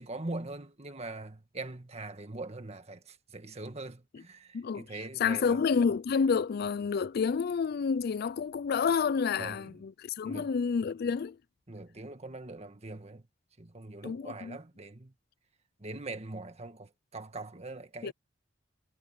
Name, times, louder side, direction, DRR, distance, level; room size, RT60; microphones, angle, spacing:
voice 1, 0.0-5.6 9.4-9.7 10.2-10.5 11.7-13.2 13.6-15.1 15.8-18.1, right 2 dB, 35° right, 1.7 m, -42 dB
voice 2, 4.5-4.9 5.2-11.4 14.0-14.6 18.0-18.1, left 6 dB, 55° left, 0.4 m, -29 dB
head